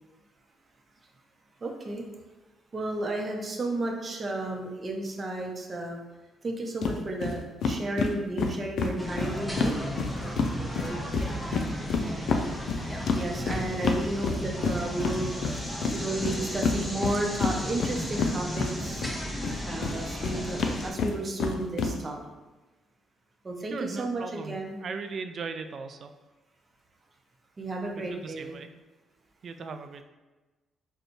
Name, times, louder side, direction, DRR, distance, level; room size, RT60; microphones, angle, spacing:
voice 1, 1.6-2.1 2.7-6.0 6.4-9.8 13.1-15.5 15.9-19.0 19.7-22.2 23.4-24.8 27.6-28.6, right 2 dB, 35° right, 1 dB, 0.7 m, -33 dB
sound 1, 6.8-7.0 7.2-7.3 7.6-10.5 10.8-19.1 19.4-21.9, left 5 dB, 70° left, 0.4 m, -28 dB
sound 2, 9.0-20.9, equal, ahead, 0.7 m, -35 dB
voice 2, 23.7-26.1 28.0-28.7 29.4-30.0, right 4 dB, 55° right, 8 dB, 0.3 m, -38 dB
5.0 x 2.3 x 3.1 m, 1.2 s
cardioid pair, 90°, 0 cm